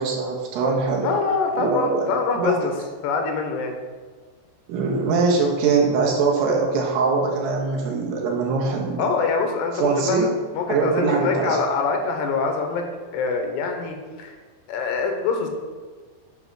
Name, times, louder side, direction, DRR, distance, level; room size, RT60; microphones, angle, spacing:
voice 1, 0.0-1.1 1.6-2.6 4.7-9.0 9.7-10.4 10.7-11.6, right 4 dB, 85° right, -2 dB, 3.4 m, -22 dB
voice 2, 1.0-2.7 3.0-3.8 9.0-10.3 10.5-12.9 13.1-14.3 14.7-15.5, left 4 dB, 80° left, 4 dB, 3.1 m, -24 dB
9.5 x 4.0 x 6.2 m, 1.5 s
omnidirectional pair, 4.7 m